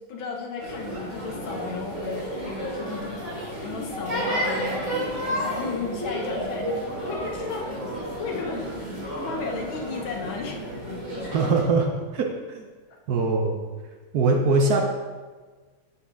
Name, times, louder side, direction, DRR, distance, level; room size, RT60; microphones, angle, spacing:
voice 1, 0.1-7.7 8.2-8.9 9.3-10.6 10.9-11.0, left 4 dB, 85° left, 1 dB, 1.8 m, -35 dB
sound 1, 0.6-11.6, equal, 90° right, 3.5 m, -31 dB
voice 2, 11.3-12.7 13.1-13.7 14.1-14.8, right 3 dB, 65° right, 2 dB, 1.0 m, -22 dB
7.2 x 6.2 x 3.5 m, 1.4 s
omnidirectional pair, 2.1 m